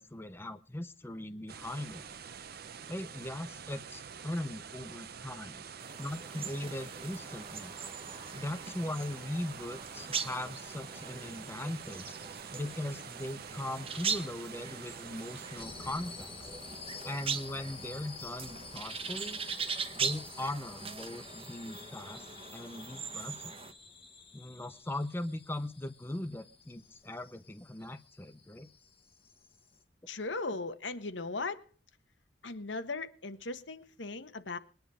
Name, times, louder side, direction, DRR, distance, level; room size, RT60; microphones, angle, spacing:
voice 1, 0.0-2.0 2.9-5.6 6.0-7.7 8.3-12.1 12.5-16.3 17.0-19.4 19.9-23.5 24.3-28.7, left 1 dB, 15° left, 0.7 m, -39 dB
sound 1, 1.5-15.6, right 6 dB, 55° right, 0.8 m, -47 dB
sound 2, 5.8-23.7, right 5 dB, 30° right, 1.2 m, -41 dB
sound 3, 15.6-29.8, left 4 dB, 30° left, 1.8 m, -50 dB
voice 2, 30.1-31.6 32.4-34.6, left 3 dB, 75° left, 1.5 m, -38 dB
21.0 x 10.5 x 5.0 m
head